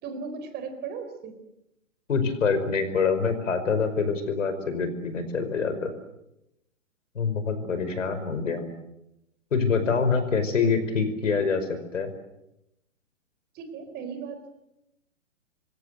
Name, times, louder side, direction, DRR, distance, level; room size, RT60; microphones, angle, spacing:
voice 1, 0.0-1.4 7.6-8.6 10.6-10.8 13.5-14.5, right 5 dB, 25° right, 9 dB, 3.9 m, -38 dB
voice 2, 2.1-5.9 7.2-8.7 9.5-12.1, left 5 dB, 65° left, 10 dB, 5.4 m, -25 dB
26.0 x 24.0 x 7.8 m, 0.85 s
figure-of-eight pair, 120°, 40 cm